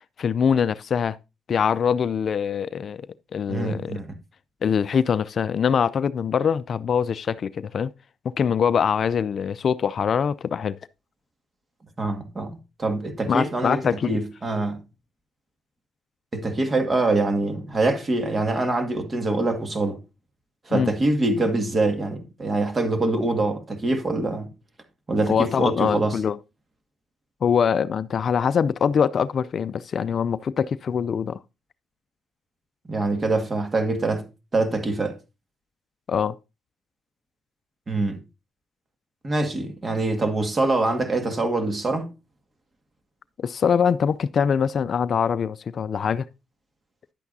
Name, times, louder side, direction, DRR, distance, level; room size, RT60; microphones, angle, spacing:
voice 1, 0.2-1.2 1.5-3.1 3.3-4.0 4.6-7.9 8.2-10.8 13.3-14.2 20.7-20.9 25.3-26.4 27.4-31.4 36.1-36.3 43.4-46.3, left 7 dB, 50° left, 0.4 m, -23 dB
voice 2, 3.5-4.1 12.0-13.8 14.1-14.8 16.3-20.0 20.7-24.5 25.1-26.2 32.9-35.2 37.9-38.2 39.2-42.1, right 2 dB, 30° right, 2.0 m, -24 dB
10.5 x 8.3 x 2.7 m
cardioid pair, 90°, 0 cm